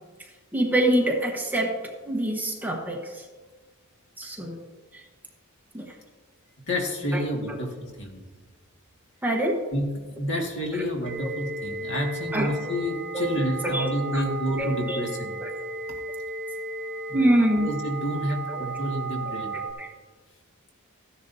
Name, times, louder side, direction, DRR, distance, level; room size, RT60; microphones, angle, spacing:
voice 1, 0.5-1.8 2.0-3.3 4.2-4.6 4.9-5.0 5.7-5.9 7.1-7.2 7.5-7.6 9.2-9.6 10.7-10.8 11.2-11.3 12.3-12.8 13.1-14.2 14.6-15.0 15.4-15.5 17.1-17.7 18.5-18.6 19.5-19.9, right 1 dB, 10° right, 0 dB, 1.1 m, -26 dB
voice 2, 6.7-8.2 9.7-9.9 10.2-15.4 17.1-17.3 17.5-19.6, equal, 55° left, 0 dB, 1.9 m, -29 dB
sound 1, 11.0-19.7, right 2 dB, 70° right, 2.5 m, -34 dB
14.5 x 10.5 x 2.7 m, 1.4 s
head